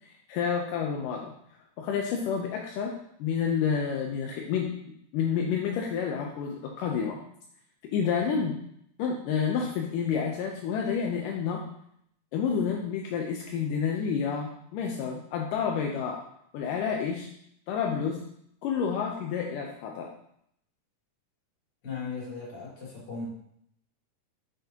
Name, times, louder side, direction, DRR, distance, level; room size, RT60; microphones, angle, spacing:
voice 1, 0.0-1.3 1.8-7.2 7.9-8.6 9.0-11.6 12.3-16.2 16.5-17.3 17.7-18.2 18.6-20.1, left 6 dB, 80° left, 0 dB, 2.4 m, -29 dB
voice 2, 21.8-23.2, left 5 dB, 40° left, -6 dB, 4.0 m, -37 dB
9.0 x 8.2 x 2.9 m, 0.72 s
omnidirectional pair, 3.8 m